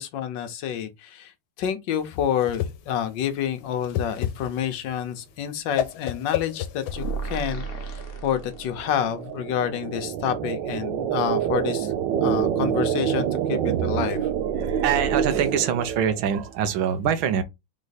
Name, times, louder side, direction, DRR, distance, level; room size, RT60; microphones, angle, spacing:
voice 1, 0.0-11.9 12.2-14.3, left 9 dB, 75° left, 1.3 m, -28 dB
Whoosh swoosh swish, 2.0-7.5, left 10 dB, 90° left, 1.4 m, -31 dB
sound 1, 6.9-9.0, right 4 dB, 50° left, 0.7 m, -33 dB
sound 2, 7.6-16.4, right 9 dB, 70° right, 1.2 m, -27 dB
voice 2, 14.6-17.4, right 8 dB, 90° right, 1.6 m, -24 dB
4.0 x 3.1 x 4.0 m
omnidirectional pair, 2.1 m